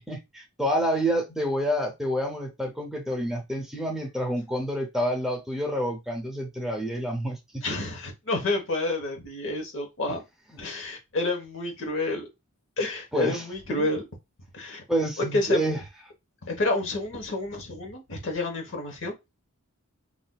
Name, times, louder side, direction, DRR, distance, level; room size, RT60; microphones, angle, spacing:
voice 1, 0.0-7.6 13.1-13.4 13.7-13.9 14.9-15.8, equal, ahead, 0.6 m, -28 dB
voice 2, 7.6-10.2 10.6-12.3 12.8-14.0 14.5-14.8 15.3-15.6 16.4-19.1, left 2 dB, 60° left, 1.0 m, -29 dB
3.7 x 2.5 x 2.2 m
head